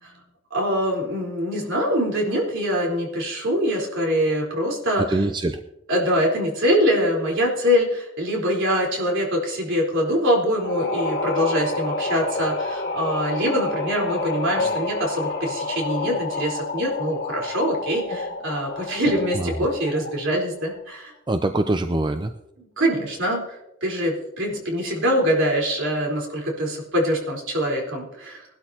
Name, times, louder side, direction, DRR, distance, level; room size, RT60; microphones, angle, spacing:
voice 1, 0.5-5.0 5.9-21.1 22.6-28.5, equal, 65° right, -1 dB, 4.1 m, -24 dB
voice 2, 5.0-5.6 19.3-19.7 21.3-22.3, right 2 dB, 20° right, 7 dB, 0.5 m, -24 dB
sound 1, 10.6-20.3, left 3 dB, 55° left, 1.3 m, -29 dB
20.5 x 12.5 x 2.9 m, 0.88 s
head